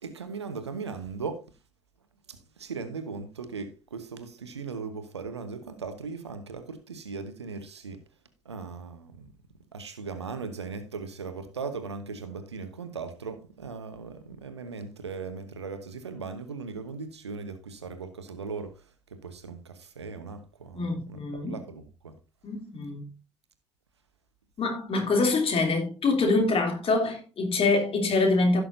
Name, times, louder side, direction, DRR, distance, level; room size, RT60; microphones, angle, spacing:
voice 1, 0.0-1.4 2.3-8.0 8.4-9.3 9.7-22.2, right 5 dB, 80° right, 1.0 m, -38 dB
voice 2, 20.7-21.6 22.4-23.1 24.6-28.6, left 3 dB, 40° left, 2.9 m, -25 dB
16.0 x 6.3 x 2.6 m
figure-of-eight pair, 50°, 14 cm